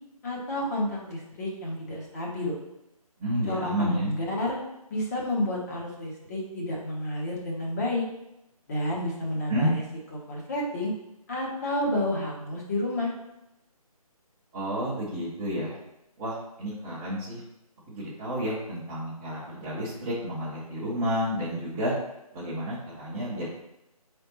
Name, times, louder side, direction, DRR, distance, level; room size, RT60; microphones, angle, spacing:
voice 1, 0.2-2.6 3.5-4.6 4.9-8.0 8.7-9.8 10.1-10.9 11.3-13.1, left 1 dB, 25° left, -3 dB, 0.9 m, -30 dB
voice 2, 3.2-4.1 9.5-9.7 14.5-15.7 16.2-17.4 17.9-21.9 22.3-23.5, equal, 10° right, -10 dB, 0.7 m, -30 dB
4.9 x 3.4 x 2.9 m, 0.88 s
figure-of-eight pair, 155°, 19 cm